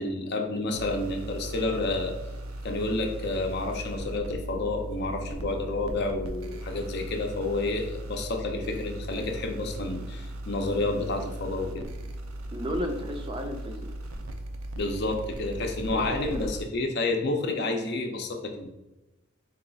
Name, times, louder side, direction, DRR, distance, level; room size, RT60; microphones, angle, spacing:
voice 1, 0.0-2.1 2.6-11.9 14.8-18.7, left 2 dB, 50° left, 3 dB, 0.6 m, -30 dB
sound 1, 0.7-16.6, right 1 dB, 90° right, 0.5 m, -38 dB
voice 2, 12.5-13.9 15.9-16.5, equal, 25° right, 4 dB, 0.4 m, -34 dB
3.9 x 2.3 x 3.9 m, 1.0 s
head